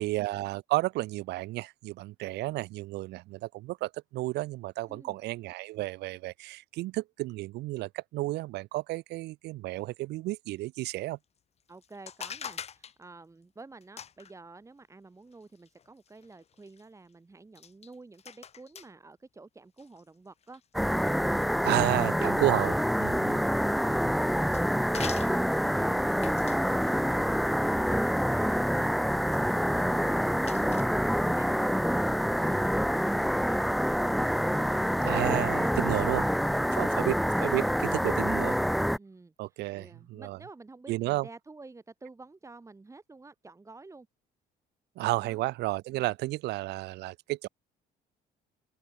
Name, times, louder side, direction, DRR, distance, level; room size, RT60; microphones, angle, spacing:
voice 1, 0.0-11.2 21.6-23.4 35.0-36.2 36.8-38.6 39.4-40.4 40.9-41.3 45.0-47.5, right 18 dB, 85° right, 2.4 m, -32 dB
sound 1, 11.6-13.0 13.8-14.3 15.3-16.8 17.5-18.9 19.8-21.0 23.8-23.9 24.3-24.7 24.9-25.3 26.2-26.6 27.9-28.5 28.8-28.9 29.3-29.4 29.8-29.9 30.2-30.8, left 8 dB, 40° left, 1.2 m, -44 dB
voice 2, 11.7-20.6 23.1-34.2 36.3-36.9 37.2-38.2 39.0-44.1 45.1-45.4, right 3 dB, 15° right, 3.2 m, -50 dB
sound 2, 20.7-39.0, equal, ahead, 0.4 m, -27 dB
open air
cardioid pair, 110°, 17 cm